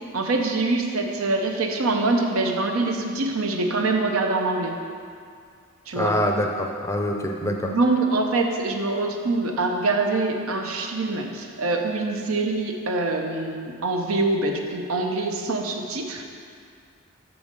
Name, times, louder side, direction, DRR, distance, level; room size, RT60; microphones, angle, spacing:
voice 1, 0.1-4.8 5.9-6.2 7.4-16.2, right 2 dB, 80° right, 3 dB, 0.8 m, -24 dB
voice 2, 5.9-7.7, left 1 dB, 15° left, 2 dB, 0.5 m, -25 dB
7.1 x 4.1 x 6.6 m, 2.2 s
head